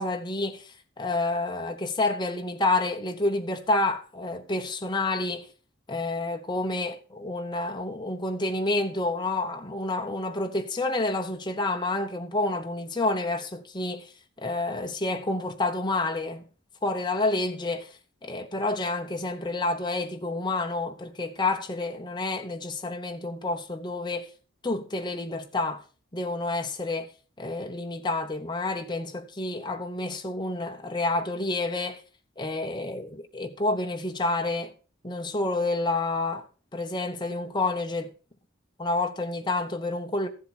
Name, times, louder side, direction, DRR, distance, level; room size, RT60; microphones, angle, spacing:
voice 1, 0.0-5.5 5.9-14.1 14.4-16.5 16.8-17.9 18.2-24.3 24.6-25.8 26.1-27.1 27.4-32.0 32.4-34.7 35.0-36.5 36.7-38.1 38.8-40.3, left 2 dB, 20° left, 0.9 m, -29 dB
14.0 x 7.6 x 4.3 m
head